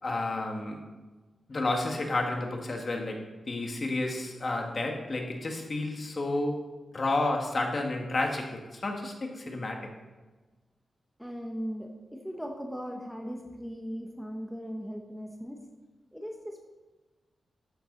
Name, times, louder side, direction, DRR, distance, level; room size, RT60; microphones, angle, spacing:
voice 1, 0.0-0.9 1.5-6.7 6.9-9.9, left 2 dB, 40° left, 2 dB, 1.8 m, -31 dB
voice 2, 11.2-15.6 16.1-16.7, equal, ahead, 2 dB, 1.1 m, -38 dB
12.5 x 8.8 x 3.9 m, 1.2 s
wide cardioid pair, 115°, 0 cm